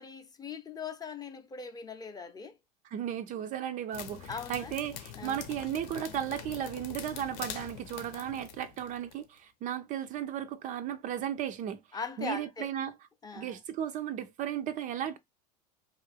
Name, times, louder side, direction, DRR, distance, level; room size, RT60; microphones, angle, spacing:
voice 1, 0.0-2.5 4.3-4.7 5.2-5.4 11.9-12.7 13.2-13.6, left 5 dB, 20° left, 0.6 m, -40 dB
voice 2, 2.8-11.8 12.2-13.0 13.4-15.2, right 10 dB, 35° right, 0.4 m, -35 dB
sound 1, 3.9-9.2, left 9 dB, 60° left, 0.7 m, -44 dB
2.8 x 2.4 x 3.3 m
hypercardioid pair, 85°, 21 cm